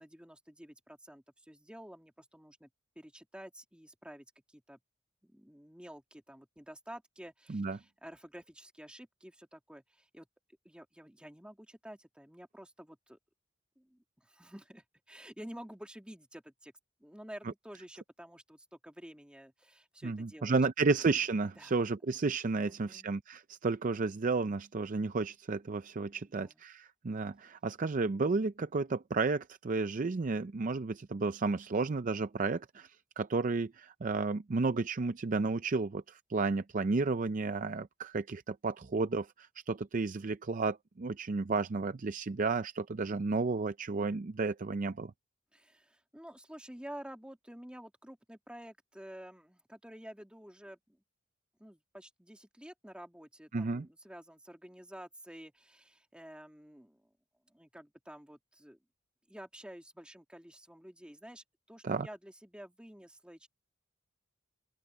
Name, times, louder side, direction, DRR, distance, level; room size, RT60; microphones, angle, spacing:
voice 1, 0.0-2.7 3.0-4.8 5.2-10.3 10.6-13.2 13.8-16.7 17.0-20.6 21.6-21.8 22.6-23.1 26.2-26.6 45.5-51.0 51.6-57.1 57.5-58.8 59.3-63.5, equal, 5° right, 2.3 m, -50 dB
voice 2, 20.0-45.1 53.5-53.9 61.8-62.1, right 3 dB, 40° right, 0.5 m, -32 dB
head